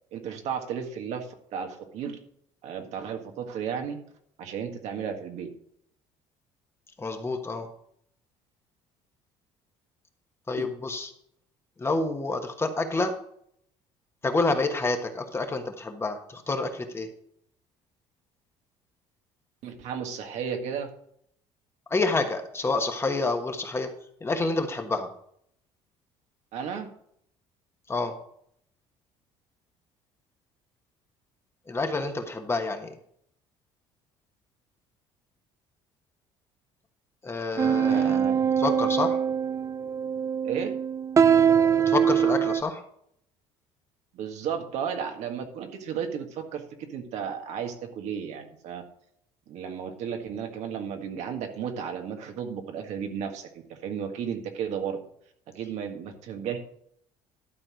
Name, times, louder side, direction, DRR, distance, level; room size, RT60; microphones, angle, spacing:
voice 1, 0.1-2.2 2.6-4.0 4.4-5.5 10.6-10.7 19.6-20.9 26.5-26.9 37.9-38.5 40.4-40.7 44.1-46.6 46.9-48.8 49.5-55.0 55.5-56.6, right 7 dB, 70° right, 4 dB, 1.7 m, -34 dB
voice 2, 7.0-7.7 10.5-11.1 11.8-13.1 14.2-17.1 21.9-23.9 24.2-25.1 27.9-28.1 31.7-32.9 37.2-38.2 38.6-39.2 41.9-42.8, left 3 dB, 20° left, 5 dB, 1.3 m, -28 dB
sound 1, 37.6-42.6, right 8 dB, 25° right, 0.3 m, -23 dB
12.0 x 4.3 x 6.3 m, 0.69 s
cardioid pair, 105°, 12 cm